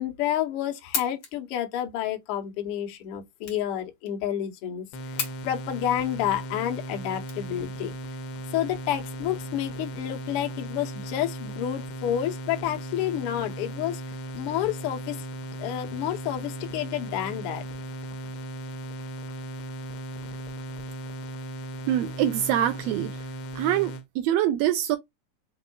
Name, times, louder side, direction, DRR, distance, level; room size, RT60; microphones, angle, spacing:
voice 1, 0.0-4.9 5.1-7.9 8.5-14.0 14.3-15.2 15.6-17.6, left 11 dB, 60° left, 1.6 m, -29 dB
sound 1, 0.6-8.0, left 5 dB, 40° left, 1.7 m, -38 dB
sound 2, 4.9-24.0, right 2 dB, 90° left, 1.2 m, -37 dB
voice 2, 21.9-23.2 23.5-25.0, right 11 dB, 80° right, 1.5 m, -25 dB
5.3 x 3.6 x 2.2 m
omnidirectional pair, 3.5 m